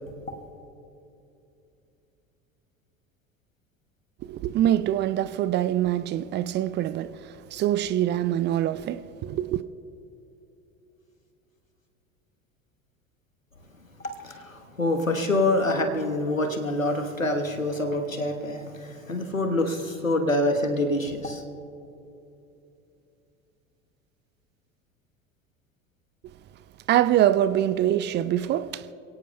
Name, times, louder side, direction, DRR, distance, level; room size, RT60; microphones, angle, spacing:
voice 1, 4.3-9.6 26.9-28.9, right 12 dB, 30° right, 0.5 m, -24 dB
voice 2, 14.0-21.4, left 1 dB, 90° left, 1.2 m, -26 dB
28.5 x 17.5 x 2.2 m
figure-of-eight pair, 70°, 39 cm